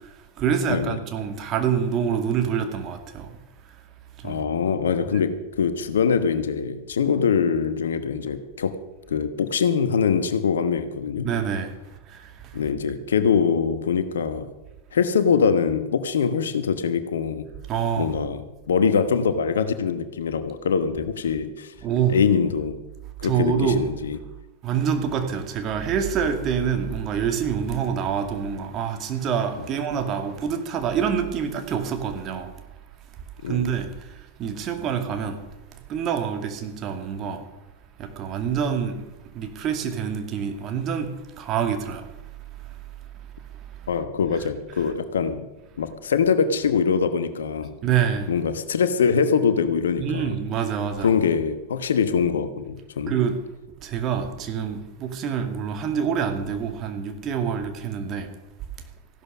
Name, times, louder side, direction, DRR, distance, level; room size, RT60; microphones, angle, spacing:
voice 1, 0.4-3.3 4.2-4.4 11.2-11.7 12.1-12.3 17.7-18.1 21.8-22.2 23.2-23.8 24.6-32.5 33.5-34.1 34.4-35.4 35.9-37.4 38.0-39.0 39.3-42.1 47.8-48.3 50.0-51.1 53.1-53.4 53.8-58.3, right 7 dB, 35° right, 2.3 m, -26 dB
voice 2, 4.2-8.8 9.1-11.3 12.5-14.5 14.9-17.5 18.0-21.7 22.1-22.8 23.2-24.2 33.4-33.7 43.9-45.5 45.8-47.7 48.3-50.3 51.0-53.2, left 6 dB, 65° left, 1.2 m, -23 dB
15.5 x 12.0 x 6.2 m
figure-of-eight pair, 90°, 0 cm